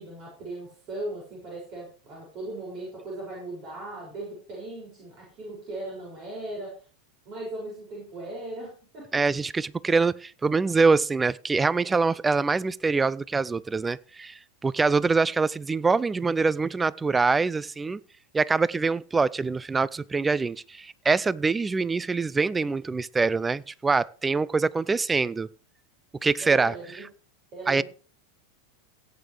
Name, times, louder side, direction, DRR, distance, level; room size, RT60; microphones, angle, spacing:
voice 1, 0.0-6.7 7.2-9.2 26.4-27.0 27.5-27.8, right 2 dB, 45° right, 6.5 m, -38 dB
voice 2, 9.1-18.0 18.3-25.5 26.2-27.0 27.7-27.8, right 4 dB, 15° right, 0.5 m, -24 dB
17.0 x 9.1 x 3.4 m
figure-of-eight pair, 90°, 0 cm